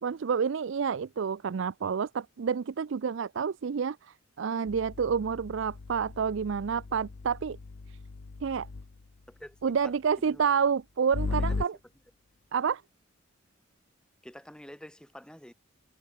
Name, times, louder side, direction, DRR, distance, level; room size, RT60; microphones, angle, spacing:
voice 1, 0.0-7.6 8.4-8.7 9.6-11.8 12.5-12.8, right 6 dB, 65° right, 0.4 m, -29 dB
sound 1, 4.7-9.0 11.1-11.7, left 3 dB, 80° left, 0.7 m, -37 dB
voice 2, 9.3-10.0 10.3-10.4 11.3-11.7 14.2-15.5, equal, 5° left, 1.4 m, -48 dB
head